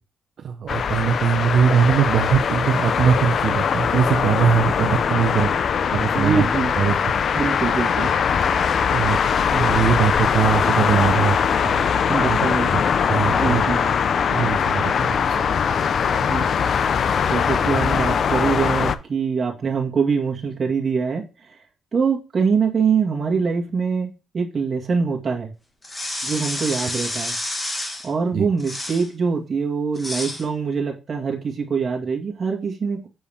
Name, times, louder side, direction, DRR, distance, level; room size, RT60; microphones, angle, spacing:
voice 1, 0.4-5.5 5.9-6.5 6.8-7.1 8.9-9.2 9.5-11.9 12.2-12.5 12.7-12.8 13.1-13.9 14.2-15.4 28.3-28.5, right 7 dB, 60° right, 5 dB, 0.7 m, -21 dB
sound 1, 0.7-19.0, left 7 dB, 55° left, 0.5 m, -21 dB
voice 2, 6.1-6.7 7.4-8.1 12.1-12.7 13.2-13.8 16.2-16.5 17.3-21.2 21.9-25.5 26.2-27.3 28.0-33.1, right 5 dB, 40° right, 0 dB, 1.9 m, -23 dB
sound 2, 25.8-28.1 28.6-29.1 29.9-30.4, left 1 dB, 15° left, 1.7 m, -29 dB
7.0 x 4.6 x 3.5 m, 0.31 s
cardioid pair, 95°, 0 cm